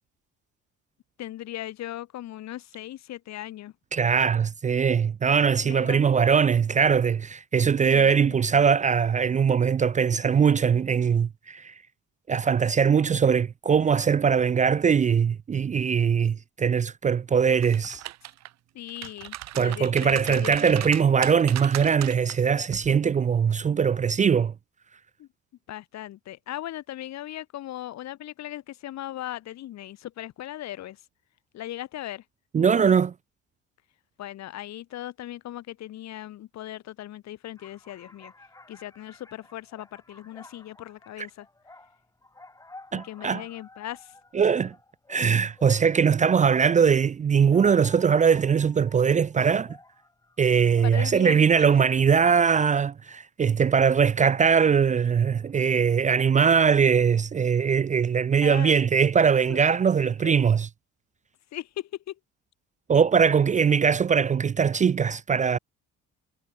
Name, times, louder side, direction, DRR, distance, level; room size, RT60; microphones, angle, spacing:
voice 1, 1.2-3.7 5.6-6.0 7.9-8.4 18.7-20.9 25.2-25.3 25.7-31.0 31.5-32.2 34.2-38.3 38.7-41.5 42.9-44.1 50.8-51.7 58.4-58.8 59.5-59.6 60.0-60.4 61.5-62.2, left 13 dB, 65° left, 4.2 m, -38 dB
voice 2, 3.9-11.7 12.3-18.0 19.6-24.5 32.5-33.1 41.2-41.3 42.9-43.4 44.3-44.7 45.1-49.8 50.4-60.7 62.9-65.6, right 6 dB, 25° right, 0.5 m, -21 dB
sound 1, 17.5-18.5 18.9-22.3 22.7-22.9, right 15 dB, 65° right, 1.2 m, -37 dB
sound 2, 37.6-46.0 47.1-51.9 52.2-52.6, left 2 dB, 10° left, 5.0 m, -52 dB
cardioid pair, 125°, 29 cm